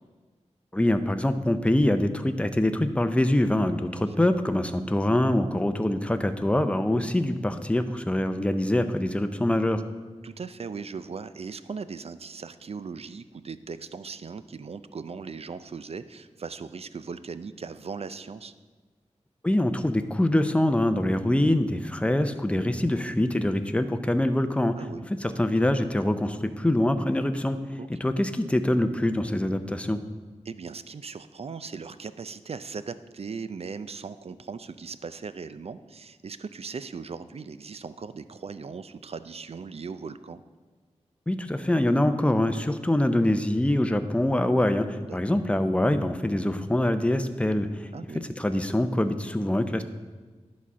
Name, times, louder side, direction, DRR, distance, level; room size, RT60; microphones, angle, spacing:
voice 1, 0.7-9.8 19.4-24.7 25.2-27.6 28.0-30.0 41.3-47.9 48.4-49.8, left 1 dB, 10° left, 9 dB, 0.6 m, -24 dB
voice 2, 10.2-18.5 24.8-25.1 27.8-28.2 30.4-40.4 45.0-45.2 47.9-48.3, right 5 dB, 55° right, 13 dB, 0.4 m, -38 dB
11.0 x 4.2 x 6.1 m, 1.4 s
wide cardioid pair, 65°, 12 cm